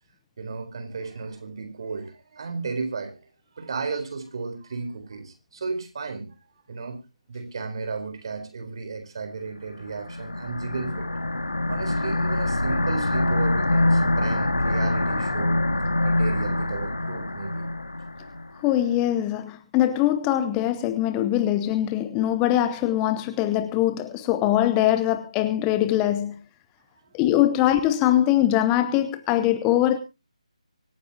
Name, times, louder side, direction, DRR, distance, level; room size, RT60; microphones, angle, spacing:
voice 1, 0.4-3.3 3.6-6.3 6.7-7.0 7.3-11.1 11.7-15.6 16.0-17.7, right 4 dB, 45° right, 4.2 m, -34 dB
sound 1, 9.8-18.5, left 1 dB, 80° left, 2.2 m, -25 dB
voice 2, 18.6-26.4 27.1-30.0, left 12 dB, 15° left, 0.7 m, -22 dB
24.5 x 9.7 x 2.8 m
figure-of-eight pair, 155°, 4 cm